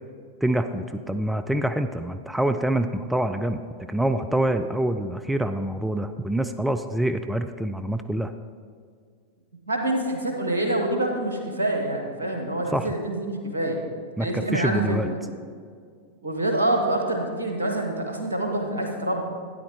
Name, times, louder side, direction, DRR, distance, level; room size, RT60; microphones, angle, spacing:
voice 1, 0.4-3.6 3.9-8.3 12.7-12.9 14.2-15.1, right 1 dB, 5° right, 9 dB, 0.4 m, -26 dB
voice 2, 9.7-13.8 14.2-15.2 16.2-19.3, right 1 dB, 75° right, 2 dB, 1.5 m, -26 dB
12.5 x 9.7 x 3.3 m, 2.1 s
figure-of-eight pair, 90°, 0 cm